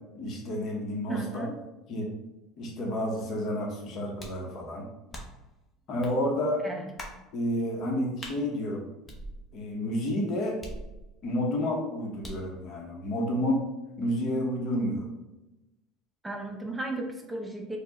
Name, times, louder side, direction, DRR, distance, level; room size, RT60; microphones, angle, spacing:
voice 1, 0.1-1.5 1.9-2.1 2.6-4.9 5.9-6.6 7.3-8.9 9.5-10.6 11.2-13.6 14.0-15.1, left 1 dB, 50° left, 0 dB, 1.0 m, -30 dB
voice 2, 1.1-1.6 6.6-6.9 16.2-17.8, right 2 dB, 10° right, 2 dB, 0.5 m, -35 dB
sound 1, 4.2-4.5 5.1-5.5 6.0-6.2 7.0-7.2 8.2-8.4 9.1-9.7 10.6-11.3 12.2-12.5, equal, 20° left, 0.8 m, -42 dB
4.3 x 2.3 x 2.9 m, 0.99 s
supercardioid pair, 105°, 0 cm